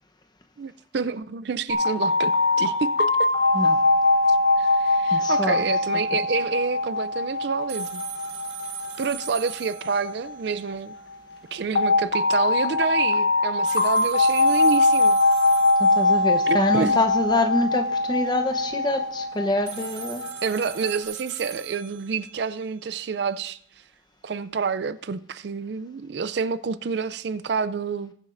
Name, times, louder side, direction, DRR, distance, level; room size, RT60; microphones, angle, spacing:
voice 1, 0.6-3.3 4.6-8.0 9.0-10.9 11.5-15.2 16.5-17.0 20.4-23.6 24.2-28.1, right 5 dB, 60° right, 0.4 m, -28 dB
sound 1, 1.7-10.5 11.7-20.9, left 2 dB, 60° left, 1.2 m, -22 dB
voice 2, 5.1-6.0 15.8-20.2, left 2 dB, 20° left, 0.8 m, -26 dB
sound 2, 7.7-10.8 11.0-11.1 13.7-16.7 19.7-22.7, right 10 dB, 80° right, 1.8 m, -40 dB
20.5 x 7.3 x 2.6 m
head